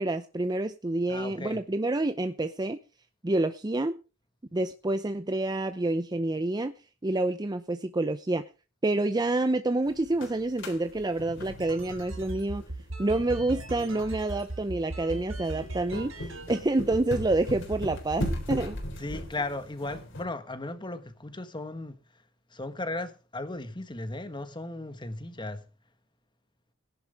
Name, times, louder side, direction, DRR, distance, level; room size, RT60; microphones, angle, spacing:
voice 1, 0.0-2.8 3.2-4.0 4.5-6.7 7.0-8.4 8.8-12.6 13.0-18.8, right 2 dB, 20° right, 0.6 m, -28 dB
voice 2, 1.1-1.6 19.0-22.0 22.5-25.6, left 2 dB, 25° left, 1.4 m, -36 dB
sound 1, 9.9-20.2, equal, 65° left, 3.8 m, -38 dB
sound 2, 11.2-16.6 16.9-17.4 17.7-19.2, right 2 dB, 85° right, 4.7 m, -38 dB
17.5 x 11.0 x 3.5 m
head